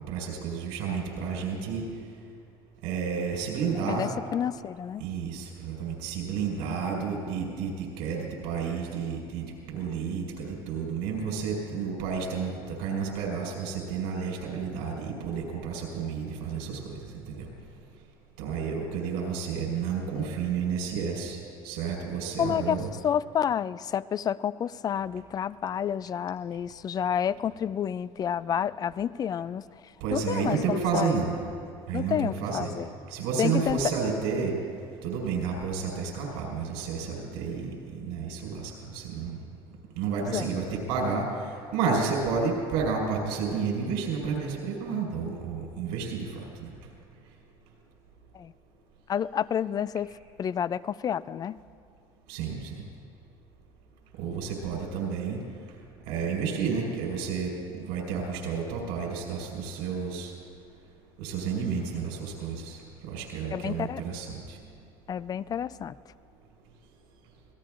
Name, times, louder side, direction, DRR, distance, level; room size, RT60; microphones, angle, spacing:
voice 1, 0.1-1.8 2.8-4.1 5.0-17.4 18.4-21.4 21.6-22.9 30.0-31.3 31.9-32.7 33.1-34.5 35.0-39.4 39.9-46.7 52.3-52.7 54.2-55.4 56.1-60.3 61.2-64.6, right 5 dB, 85° right, -1 dB, 4.9 m, -31 dB
voice 2, 3.9-5.0 22.4-29.6 30.1-31.1 31.9-32.9 33.4-33.8 40.2-40.5 48.3-48.5 49.1-50.1 50.4-51.6 63.5-64.0 65.1-65.9, left 9 dB, 35° left, 18 dB, 0.4 m, -29 dB
27.0 x 18.0 x 2.6 m, 2.4 s
supercardioid pair, 95°, 12 cm